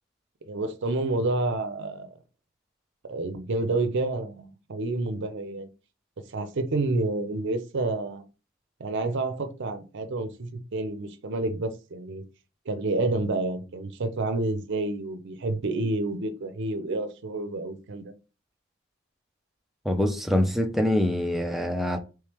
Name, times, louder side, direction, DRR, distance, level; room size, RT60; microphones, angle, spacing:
voice 1, 0.4-2.1 3.0-5.7 6.3-8.2 8.8-12.2 12.7-18.1, right 2 dB, 60° right, 0.6 m, -29 dB
voice 2, 19.9-22.0, left 1 dB, ahead, 0.4 m, -24 dB
3.2 x 3.2 x 3.4 m
head